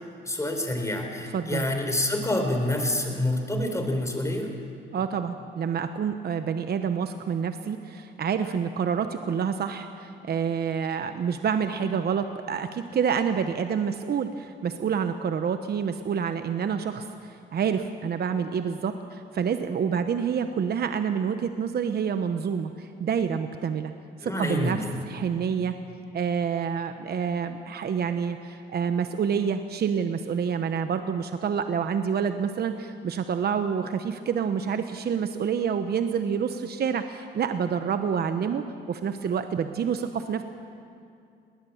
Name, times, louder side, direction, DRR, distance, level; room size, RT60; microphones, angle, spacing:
voice 1, 0.3-4.5 24.2-25.0, left 1 dB, 15° left, 4 dB, 4.0 m, -27 dB
voice 2, 1.3-1.6 4.9-23.9 24.2-24.8 25.1-25.7 26.1-40.4, right 7 dB, 55° right, 8 dB, 1.0 m, -28 dB
20.0 x 19.5 x 7.1 m, 2.5 s
cardioid pair, 90°, 20 cm